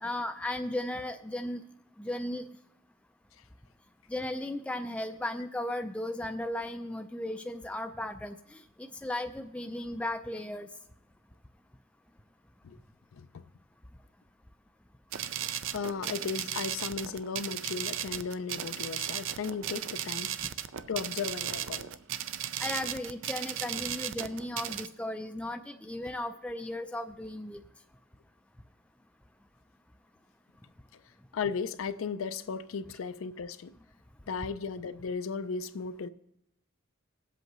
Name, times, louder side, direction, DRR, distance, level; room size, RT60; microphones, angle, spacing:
voice 1, 0.0-1.6 2.0-2.5 4.1-10.7 22.6-27.6, left 1 dB, 5° left, 0.3 m, -36 dB
voice 2, 13.1-13.4 15.7-20.3 20.9-21.9 31.3-33.7 34.3-36.1, left 5 dB, 75° left, 0.4 m, -35 dB
sound 1, 15.1-24.9, right 10 dB, 65° right, 0.4 m, -36 dB
18.0 x 7.9 x 3.1 m
head